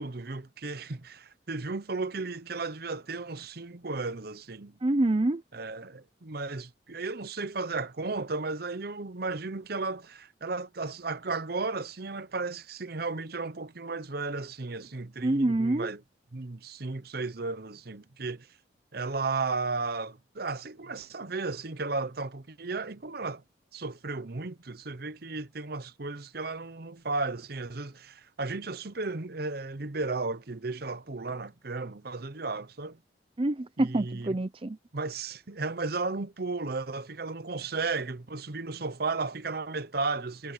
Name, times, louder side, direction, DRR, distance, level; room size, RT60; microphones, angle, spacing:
voice 1, 0.0-4.8 5.5-16.0 16.3-18.5 18.9-23.4 23.7-33.0 33.8-34.4 34.9-40.5, right 3 dB, 55° right, 0.9 m, -34 dB
voice 2, 4.8-5.4 15.2-15.9 33.4-34.8, right 2 dB, 30° right, 0.5 m, -26 dB
head